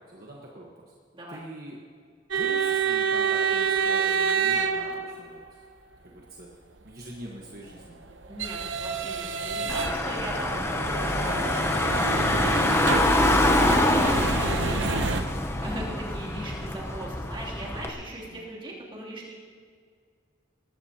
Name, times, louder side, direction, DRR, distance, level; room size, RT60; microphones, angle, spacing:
voice 1, 0.1-0.9 1.3-1.8 2.3-5.6 6.0-6.5 6.8-8.0 16.1-16.3 18.3-18.4, right 1 dB, 50° right, -3 dB, 1.4 m, -44 dB
voice 2, 1.1-1.4 8.3-15.1 15.6-19.3, right 1 dB, 25° right, -6 dB, 3.0 m, -39 dB
sound 1, 2.3-5.5 7.5-15.2, right 5 dB, 80° right, 0.9 m, -28 dB
Car / Engine, 9.7-17.9, left 1 dB, 15° left, 0.8 m, -25 dB
20.0 x 15.0 x 2.9 m, 2.1 s
head